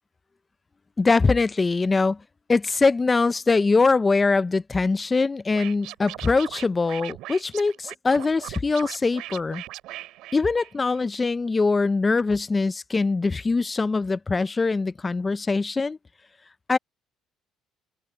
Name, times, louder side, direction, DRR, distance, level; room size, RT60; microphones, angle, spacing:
voice 1, 1.0-2.2 2.5-9.6 10.3-16.0 16.7-16.8, left 3 dB, 15° left, 0.4 m, -22 dB
Scratching (performance technique), 5.5-11.0, right 16 dB, 75° right, 3.2 m, -39 dB
cardioid pair, 170°, 0 cm